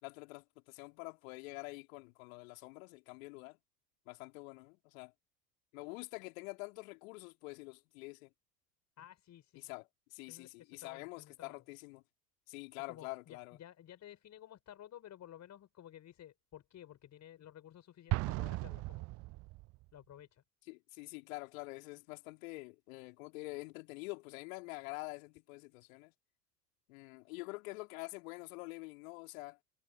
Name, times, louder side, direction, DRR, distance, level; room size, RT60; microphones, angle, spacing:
voice 1, 0.0-3.6 4.1-5.1 5.7-8.3 9.6-9.8 10.1-12.0 12.5-13.6 20.7-26.1 26.9-29.6, left 25 dB, 55° left, 3.7 m, -46 dB
voice 2, 9.0-9.8 10.3-11.6 12.8-19.1 19.9-20.4, left 11 dB, 35° left, 5.8 m, -54 dB
Explosion, 18.1-19.8, right 21 dB, 30° right, 0.6 m, -37 dB
figure-of-eight pair, 75°, 48 cm